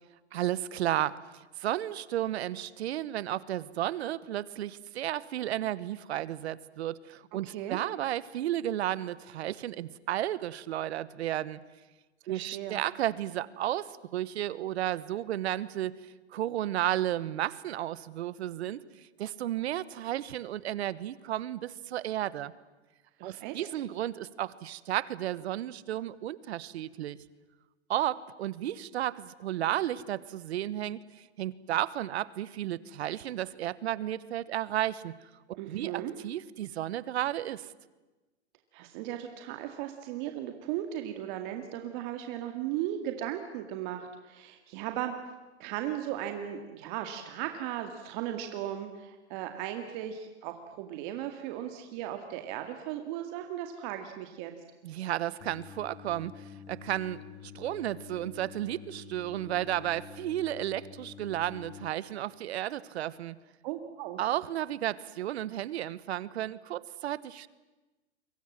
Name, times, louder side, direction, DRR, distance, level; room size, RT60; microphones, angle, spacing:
voice 1, 0.3-1.2 1.6-11.6 12.3-22.5 23.2-27.2 27.9-35.2 35.7-37.7 54.8-63.4 64.2-67.5, right 13 dB, 70° right, 18 dB, 1.3 m, -33 dB
voice 2, 7.4-7.8 12.3-12.8 23.2-23.8 35.5-36.1 38.7-45.1 45.6-54.5 63.6-64.2, right 11 dB, 45° right, 5 dB, 2.2 m, -37 dB
Singing, 55.4-61.9, left 7 dB, 40° left, 4.3 m, -48 dB
28.5 x 24.0 x 7.5 m, 1.1 s
hypercardioid pair, 140°, 34 cm